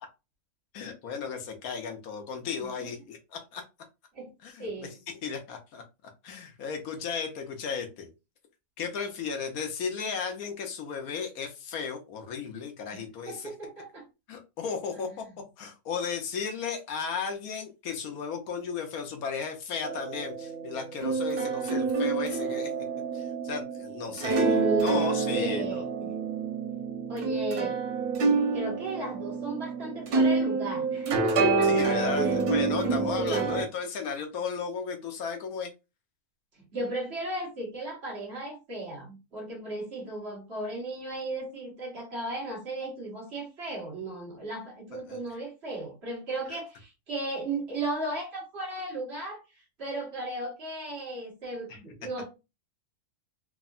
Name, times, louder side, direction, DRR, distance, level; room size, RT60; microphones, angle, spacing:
voice 1, 0.7-3.6 4.4-4.9 5.2-5.8 6.2-8.1 8.8-13.5 14.3-15.2 15.6-22.7 23.1-25.6 31.6-35.7 44.9-45.2 46.5-46.6 51.7-51.8, left 6 dB, 75° left, 5 dB, 1.1 m, -35 dB
voice 2, 4.6-5.0 12.9-14.0 24.4-26.1 27.1-27.8 28.5-32.4 32.7-33.6 36.7-49.4 49.8-52.3, right 2 dB, 45° right, -2 dB, 1.4 m, -35 dB
sound 1, 19.8-33.6, right 4 dB, 90° right, 1.4 m, -28 dB
3.5 x 2.1 x 2.4 m, 0.27 s
omnidirectional pair, 1.6 m